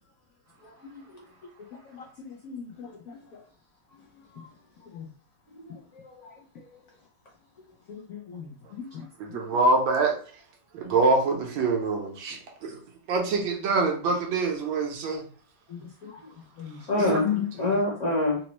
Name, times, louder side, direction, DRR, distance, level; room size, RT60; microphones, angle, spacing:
voice 1, 0.6-1.0 3.1-3.2 5.6-5.7 6.0-6.3 6.7-6.8 16.9-17.3 17.6-18.4, left 2 dB, 45° left, 1.1 m, -26 dB
voice 2, 1.9-3.1 4.9-5.1 7.9-9.0 15.7-16.1 16.6-16.8 17.1-17.5, left 10 dB, 85° left, 0.7 m, -35 dB
voice 3, 9.2-10.2 10.7-12.8 13.1-15.2 17.0-17.3, right 3 dB, 80° right, 1.6 m, -25 dB
4.1 x 2.0 x 2.9 m
omnidirectional pair, 2.1 m